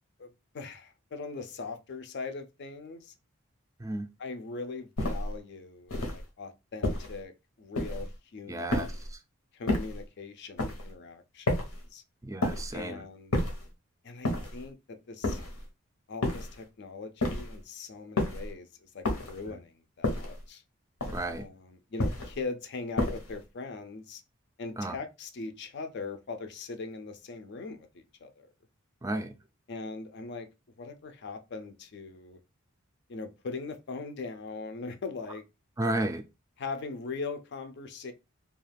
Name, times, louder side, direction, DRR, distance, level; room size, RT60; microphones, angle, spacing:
voice 1, 0.2-3.1 4.2-7.3 7.6-9.0 9.5-11.6 11.9-12.0 12.7-13.4 14.0-15.4 16.1-20.6 21.3-24.2 24.6-28.5 29.7-30.5 30.8-32.4 33.1-35.4 36.6-38.1, left 4 dB, 55° left, 0.4 m, -40 dB
sound 1, 5.0-5.4 5.9-6.3 6.8-7.2 7.8-8.2 8.7-9.1 9.7-10.0 10.6-10.9 11.5-11.9 12.4-12.8 13.3-13.7 14.2-14.7 15.2-15.7 16.2-16.6 17.2-17.6 18.2-18.5 19.0-19.5 20.0-20.4 21.0-21.4 22.0-22.4 23.0-23.4, left 1 dB, 85° left, 0.9 m, -31 dB
voice 2, 8.5-9.2 12.2-13.0 19.5-19.6 21.1-21.5 24.8-25.0 29.0-29.3 35.8-36.3, right 1 dB, 15° right, 0.3 m, -33 dB
2.3 x 2.3 x 3.3 m
head